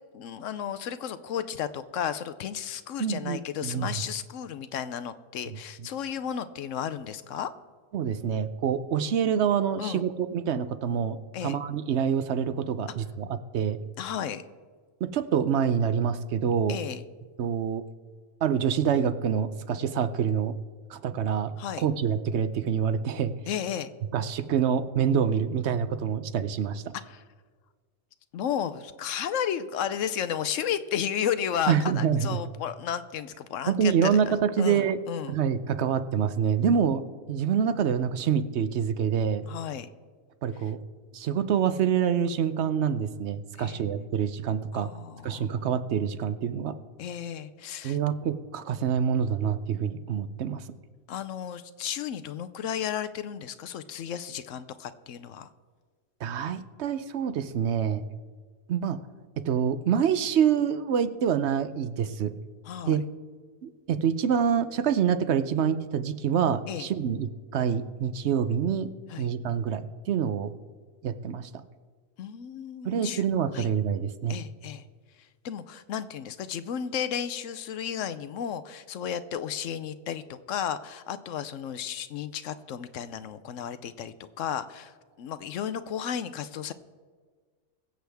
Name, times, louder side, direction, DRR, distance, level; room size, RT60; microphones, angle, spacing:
voice 1, 0.1-7.5 9.8-10.0 11.3-11.6 14.0-14.4 16.7-17.0 21.6-21.8 23.5-23.9 27.0-27.2 28.3-35.4 39.5-39.9 43.6-44.1 44.7-45.5 47.0-48.0 51.1-55.5 62.7-63.0 66.7-66.9 69.1-69.2 72.2-73.2 73.5-73.7 74.3-74.8 75.4-84.9 85.2-86.7, left 9 dB, 70° left, 13 dB, 0.9 m, -33 dB
voice 2, 3.0-4.0 5.5-5.6 7.9-11.2 11.4-13.8 15.0-16.8 17.4-17.8 18.4-20.5 20.9-21.5 21.8-23.3 24.1-26.8 31.7-32.4 33.7-35.0 35.3-37.0 37.3-39.5 40.4-40.8 41.1-44.9 45.2-46.7 47.8-50.6 56.2-58.0 58.7-59.0 59.4-62.3 62.8-63.0 63.6-68.9 69.2-70.5 71.0-71.5 72.8-74.4, right 7 dB, 60° right, 12 dB, 0.9 m, -26 dB
22.5 x 7.9 x 3.5 m, 1.5 s
omnidirectional pair, 1.4 m